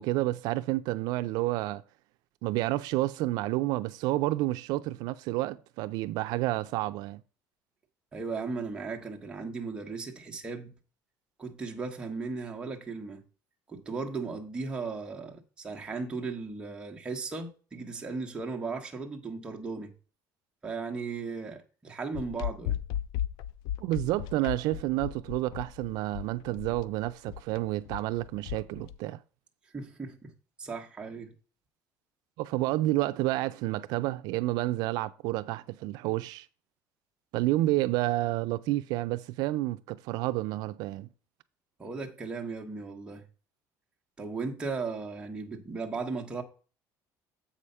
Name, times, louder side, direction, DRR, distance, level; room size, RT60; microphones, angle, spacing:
voice 1, 0.0-1.8 2.4-7.2 23.8-29.2 32.4-36.5 37.3-41.1, right 17 dB, 75° right, 0.4 m, -30 dB
voice 2, 8.1-10.7 11.4-13.2 13.7-19.9 20.6-22.8 29.7-30.3 30.6-31.3 41.8-43.2 44.2-46.4, right 4 dB, 15° right, 1.1 m, -36 dB
sound 1, 22.1-29.0, left 11 dB, 80° left, 0.4 m, -36 dB
7.6 x 4.9 x 5.4 m
cardioid pair, 170°, 7 cm